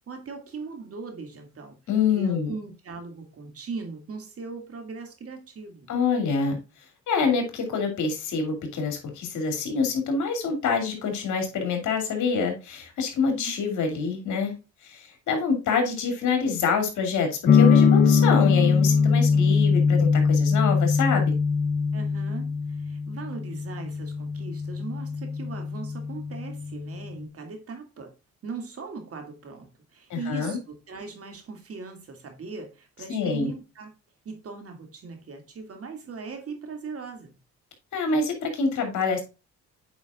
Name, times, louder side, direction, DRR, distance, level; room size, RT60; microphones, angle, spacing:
voice 1, 0.1-1.8 2.1-5.9 13.3-13.4 21.9-28.1 28.4-33.9 34.2-37.4, right 4 dB, 50° right, 2.3 m, -39 dB
voice 2, 1.9-2.5 5.9-6.6 7.1-14.6 14.8-21.4 30.1-30.6 33.1-33.5 37.9-39.2, left 5 dB, 75° left, 2.7 m, -26 dB
sound 1, 17.5-27.2, left 5 dB, 35° left, 0.6 m, -22 dB
8.6 x 5.1 x 2.3 m
cardioid pair, 90°, 30 cm